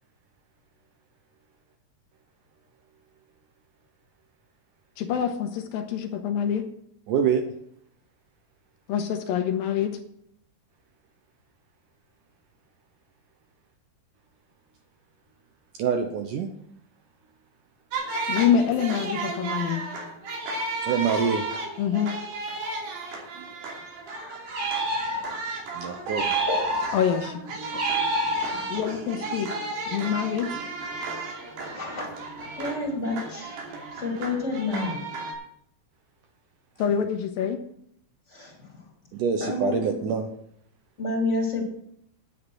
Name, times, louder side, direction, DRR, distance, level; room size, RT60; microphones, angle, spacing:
voice 1, 5.0-6.6 8.9-10.0 18.3-19.8 21.8-22.1 26.9-27.4 27.7-27.8 28.7-29.5 29.9-30.5 36.8-37.6, left 8 dB, 75° left, 6 dB, 2.5 m, -26 dB
voice 2, 7.1-7.4 15.8-16.5 20.9-21.5 23.4-23.5 25.7-26.3 39.1-40.3, right 6 dB, 70° right, 5 dB, 2.1 m, -25 dB
sound 1, 17.9-35.3, right 3 dB, 90° right, 4.9 m, -34 dB
voice 3, 24.1-24.4 26.3-26.9 28.5-28.9 31.6-32.1 32.6-35.0 38.3-38.9 39.4-39.8 41.0-41.7, left 2 dB, 20° left, -1 dB, 2.5 m, -30 dB
sound 2, 24.5-25.5 26.1-27.2 27.7-28.9, right 1 dB, 35° right, 2.1 m, -27 dB
10.0 x 9.8 x 6.2 m, 0.70 s
omnidirectional pair, 4.5 m